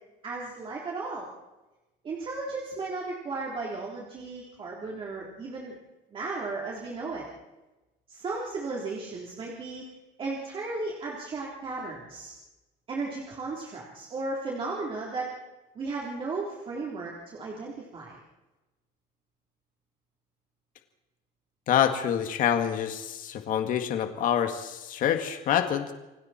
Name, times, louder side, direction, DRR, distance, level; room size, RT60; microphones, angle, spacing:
voice 1, 0.2-1.3 2.0-5.7 6.1-7.3 8.1-9.8 10.2-12.3 12.9-15.3 15.8-18.2, right 3 dB, 30° right, -3 dB, 3.7 m, -35 dB
voice 2, 21.7-25.9, left 9 dB, 50° left, 6 dB, 2.0 m, -26 dB
29.5 x 24.5 x 4.4 m, 1.1 s
cardioid pair, 175°, 17 cm